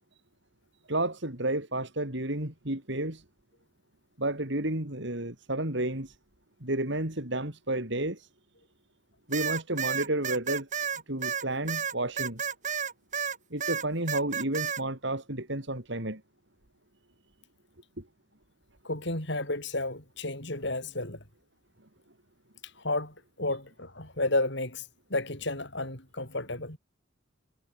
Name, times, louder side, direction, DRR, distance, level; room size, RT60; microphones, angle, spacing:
voice 1, 0.9-3.2 4.2-6.1 6.6-8.3 9.3-10.8 11.1-12.4 13.5-16.2 18.0-18.1, right 1 dB, 60° right, 4.0 m, -31 dB
sound 1, 9.3-13.4 13.6-14.8, right 7 dB, 40° right, 3.6 m, -31 dB
voice 2, 18.8-21.2 22.8-26.8, left 2 dB, 60° left, 7.7 m, -32 dB
head